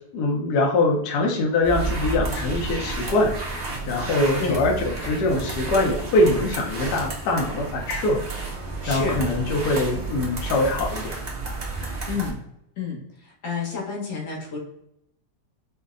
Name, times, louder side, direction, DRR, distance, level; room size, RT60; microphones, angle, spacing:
voice 1, 0.1-3.4 3.9-8.2 8.9-11.2, left 2 dB, 70° left, 1 dB, 1.2 m, -23 dB
sound 1, 1.6-12.3, right 3 dB, 75° right, 0.4 m, -31 dB
voice 2, 8.8-9.2 12.1-12.4 12.8-14.6, left 4 dB, 85° left, -3 dB, 1.9 m, -30 dB
5.1 x 2.1 x 2.4 m, 0.78 s
omnidirectional pair, 2.0 m